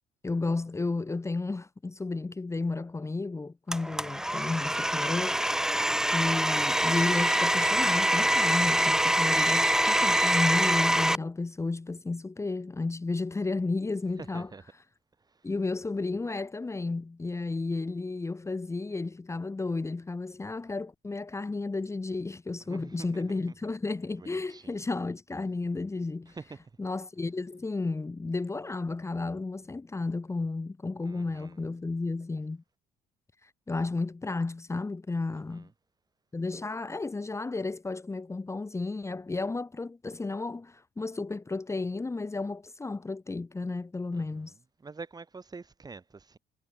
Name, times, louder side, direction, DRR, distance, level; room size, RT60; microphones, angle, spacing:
voice 1, 0.2-5.6 6.1-14.8 15.4-26.4 26.8-32.6 33.4-35.7 36.3-44.5, left 3 dB, 15° left, 1.8 m, -33 dB
Domestic sounds home sounds, 3.7-11.2, right 1 dB, 5° right, 1.6 m, -25 dB
voice 2, 14.2-14.6 22.7-23.5 24.2-24.8 26.3-26.6 31.1-31.6 35.5-35.7 44.1-44.4 44.8-46.4, right 4 dB, 25° right, 3.7 m, -46 dB
cardioid pair, 110°, 17 cm